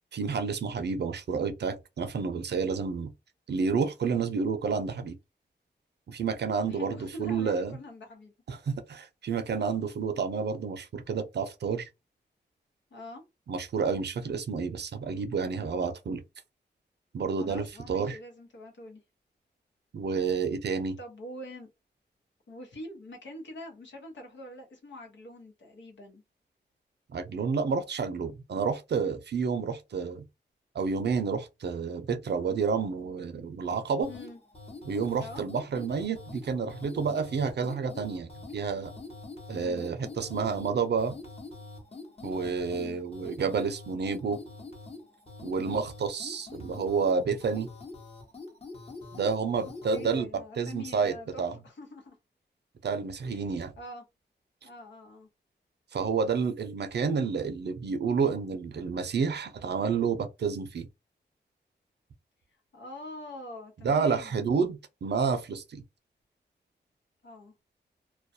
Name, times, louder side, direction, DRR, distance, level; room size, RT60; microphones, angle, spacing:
voice 1, 0.1-3.1 3.5-5.1 6.1-7.8 8.5-11.9 13.5-16.2 17.1-18.2 19.9-21.0 27.1-30.2 30.7-34.1 34.8-38.9 39.5-41.1 42.2-44.4 45.4-47.7 49.1-50.3 50.6-51.6 52.8-53.7 55.9-60.9 63.8-65.8, right 5 dB, 70° right, 0.5 m, -30 dB
voice 2, 6.7-8.3 12.9-13.2 17.4-19.0 21.0-21.7 22.5-26.2 34.1-34.4 35.2-35.4 39.5-39.8 42.7-43.0 45.6-45.8 49.9-52.1 53.2-53.4 53.8-54.0 54.6-55.3 62.7-64.4 67.2-67.5, left 1 dB, 85° left, 0.9 m, -44 dB
sound 1, 34.0-50.2, left 3 dB, 35° left, 1.0 m, -45 dB
2.3 x 2.2 x 2.6 m
cardioid pair, 70°, 18 cm